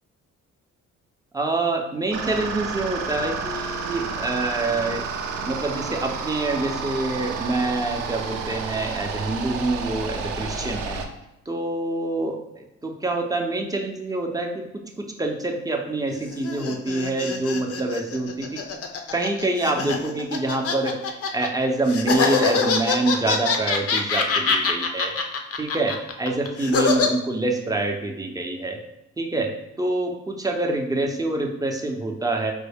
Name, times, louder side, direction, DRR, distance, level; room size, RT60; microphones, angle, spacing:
voice 1, 1.3-5.1 5.4-11.0 11.5-18.6 19.1-21.0 21.3-25.1 25.6-28.8 29.2-29.5 29.8-32.5, right 2 dB, 10° right, 2 dB, 0.5 m, -26 dB
sound 1, 2.1-11.1, right 5 dB, 90° right, 0.5 m, -31 dB
sound 2, 16.1-21.5 21.9-27.1, left 5 dB, 50° left, 0.5 m, -24 dB
4.5 x 2.0 x 3.4 m, 0.87 s
cardioid pair, 90°, 30 cm